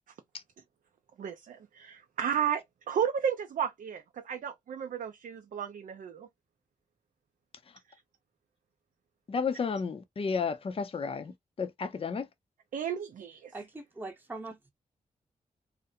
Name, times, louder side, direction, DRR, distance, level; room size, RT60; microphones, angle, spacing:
voice 1, 1.2-6.3 12.7-13.5, right 8 dB, 70° right, 0.4 m, -33 dB
voice 2, 9.3-12.3, left 5 dB, 40° left, 0.5 m, -32 dB
voice 3, 13.5-14.7, right 2 dB, 15° right, 0.8 m, -42 dB
2.4 x 2.1 x 2.6 m
cardioid pair, 80°, 14 cm